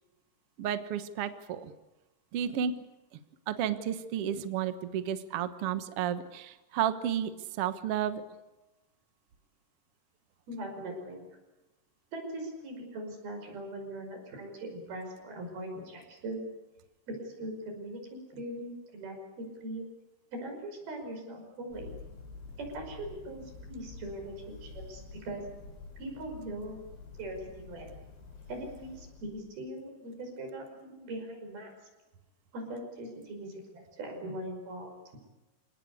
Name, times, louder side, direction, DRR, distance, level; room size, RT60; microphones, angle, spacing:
voice 1, 0.6-1.7 2.3-2.8 3.1-3.2 3.5-8.2, right 9 dB, 85° right, 10 dB, 1.3 m, -32 dB
voice 2, 10.5-11.2 12.1-16.5 17.1-19.9 20.3-22.0 22.6-25.4 26.0-26.8 27.2-27.9 28.5-31.7 32.5-34.9, right 1 dB, 65° right, 3 dB, 7.4 m, -40 dB
Thunder, 21.7-29.6, left 3 dB, 90° left, 6.5 m, -48 dB
28.0 x 18.5 x 8.4 m, 1.1 s
omnidirectional pair, 4.7 m